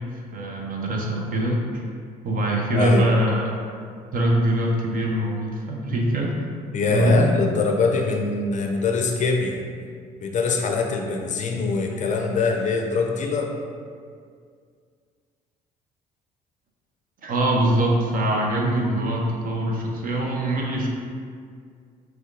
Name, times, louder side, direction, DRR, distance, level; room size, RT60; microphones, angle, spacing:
voice 1, 0.3-1.6 2.2-3.5 4.1-6.3 6.9-7.3 17.2-20.9, right 1 dB, 45° right, -1 dB, 0.8 m, -23 dB
voice 2, 2.7-3.0 6.7-9.6 10.2-13.5, left 4 dB, 40° left, 2 dB, 0.5 m, -23 dB
6.0 x 2.4 x 2.5 m, 2.1 s
hypercardioid pair, 50°, 20 cm